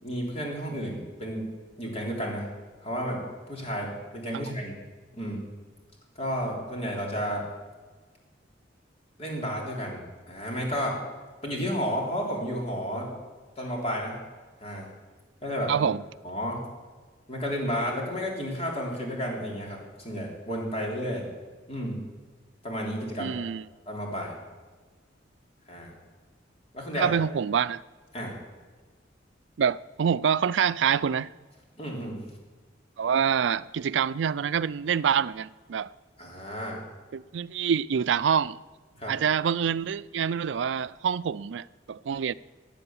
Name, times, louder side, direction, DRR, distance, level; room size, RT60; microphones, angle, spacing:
voice 1, 0.0-1.5 1.8-2.5 2.8-3.2 3.5-4.8 5.1-5.4 6.2-7.5 9.2-11.0 11.4-13.1 13.6-14.2 14.6-14.9 15.4-15.9 16.2-16.6 17.3-21.3 21.7-22.0 22.6-23.4 23.9-24.3 25.7-25.9 26.7-27.1 28.1-28.4 31.8-32.2 36.2-36.8 39.0-39.1, equal, 35° left, 3.5 m, -32 dB
voice 2, 15.7-16.0 23.2-23.6 27.0-27.8 29.6-31.3 33.0-35.9 37.1-38.6 39.1-42.3, right 7 dB, 80° right, 0.4 m, -26 dB
15.0 x 9.1 x 7.1 m
head